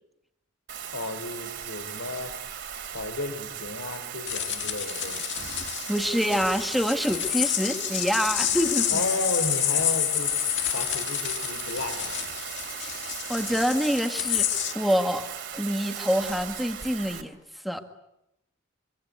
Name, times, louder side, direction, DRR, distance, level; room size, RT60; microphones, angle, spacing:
Bathtub (filling or washing), 0.7-17.2, right 8 dB, 55° right, 3.4 m, -37 dB
voice 1, 0.9-2.3 2.9-5.2 8.9-10.3 10.7-12.1, left 2 dB, 80° left, 9 dB, 3.7 m, -33 dB
sound 1, 4.3-14.7, left 11 dB, 55° left, 2.1 m, -29 dB
voice 2, 5.9-9.0 12.8-13.0 13.3-15.3 15.5-17.4 17.6-17.8, equal, ahead, 5 dB, 1.8 m, -26 dB
25.5 x 25.0 x 8.3 m, 0.86 s
head